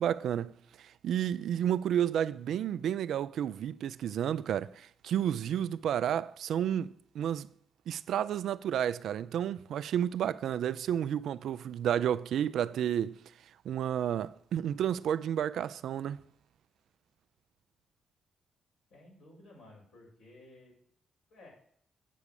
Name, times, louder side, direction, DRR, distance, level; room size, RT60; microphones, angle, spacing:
voice 1, 0.0-7.5 7.9-13.2 13.6-16.2, right 10 dB, 75° right, 0.3 m, -31 dB
voice 2, 18.9-20.7 21.3-21.5, left 2 dB, 80° left, 4.4 m, -55 dB
8.4 x 4.8 x 6.9 m
supercardioid pair, 50°, 0 cm